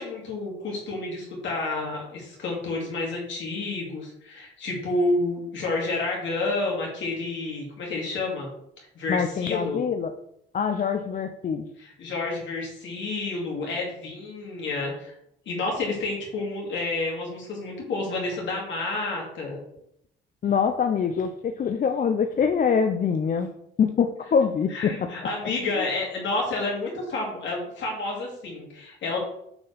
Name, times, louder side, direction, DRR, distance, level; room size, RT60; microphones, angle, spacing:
voice 1, 0.0-8.5 8.9-9.8 11.8-15.1 15.5-19.6 24.7-29.2, left 2 dB, 70° left, -2 dB, 2.6 m, -30 dB
voice 2, 9.1-10.1 10.5-11.7 20.4-23.5 23.8-24.9 25.8-25.9, left 6 dB, 45° left, 7 dB, 0.5 m, -24 dB
6.8 x 4.5 x 3.4 m, 0.75 s
cardioid pair, 90°, 20 cm